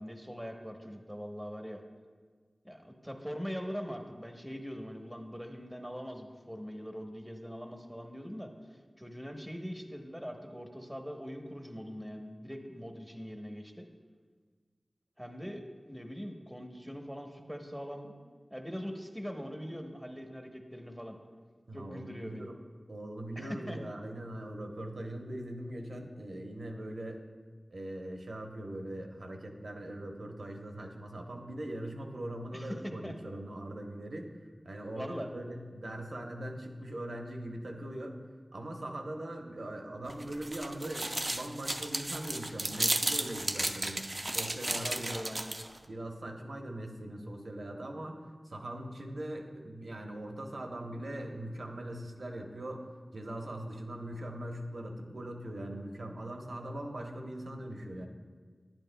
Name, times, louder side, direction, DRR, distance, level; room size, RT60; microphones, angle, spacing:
voice 1, 0.0-1.8 2.6-8.5 9.0-13.9 15.2-18.1 18.5-21.2 21.7-22.5 23.4-23.8 32.5-33.1 34.9-35.3 44.8-45.5, equal, ahead, 3 dB, 0.9 m, -42 dB
voice 2, 21.7-22.5 22.9-27.2 27.7-34.3 34.6-38.1 38.5-44.1 44.3-45.2 45.9-48.2 48.4-52.8 53.1-58.1, right 1 dB, 75° right, 2 dB, 0.9 m, -41 dB
sound 1, 40.1-45.8, right 1 dB, 40° right, 0.5 m, -34 dB
10.5 x 9.0 x 2.2 m, 1.5 s
wide cardioid pair, 45°, 0 cm